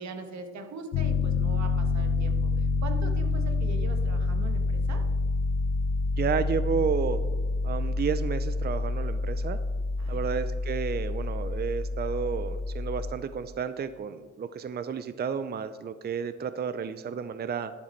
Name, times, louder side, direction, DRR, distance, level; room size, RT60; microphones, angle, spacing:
voice 1, 0.0-5.1 10.0-10.4, right 3 dB, 65° right, 6 dB, 1.6 m, -41 dB
Piano, 0.9-13.1, left 3 dB, 80° left, 1.0 m, -28 dB
voice 2, 6.2-7.2 7.6-9.6 10.1-17.7, right 6 dB, 35° right, 12 dB, 0.6 m, -31 dB
12.0 x 10.5 x 4.5 m, 1.4 s
cardioid pair, 90°, 30 cm